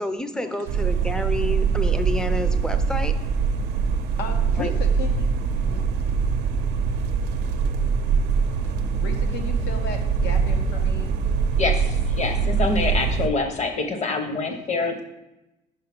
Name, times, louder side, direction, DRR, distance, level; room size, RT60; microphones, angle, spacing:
voice 1, 0.0-3.1 4.6-4.7, left 1 dB, 5° left, 9 dB, 0.5 m, -29 dB
sound 1, 0.7-13.3, right 6 dB, 90° right, 0.6 m, -23 dB
voice 2, 4.2-5.3 5.6-5.9 9.0-11.1 11.7-11.8, left 5 dB, 85° left, 4 dB, 1.0 m, -35 dB
voice 3, 11.6-15.0, left 3 dB, 40° left, 6 dB, 1.0 m, -26 dB
5.4 x 4.9 x 6.0 m, 0.95 s
cardioid pair, 110°, 17 cm